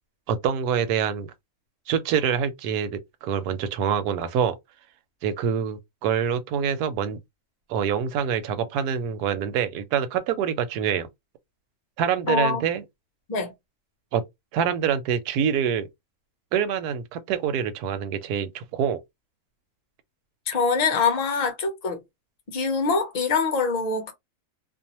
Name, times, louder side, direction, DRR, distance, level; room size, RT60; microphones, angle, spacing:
voice 1, 0.3-1.3 1.9-4.6 5.2-7.2 7.7-11.1 12.0-12.8 14.1-14.2 14.5-15.9 16.5-19.0, right 8 dB, 80° right, 1.1 m, -25 dB
voice 2, 12.3-12.6 13.3-13.5 20.5-22.0 22.5-24.1, left 5 dB, 45° left, 0.5 m, -24 dB
2.6 x 2.0 x 2.8 m
omnidirectional pair, 1.7 m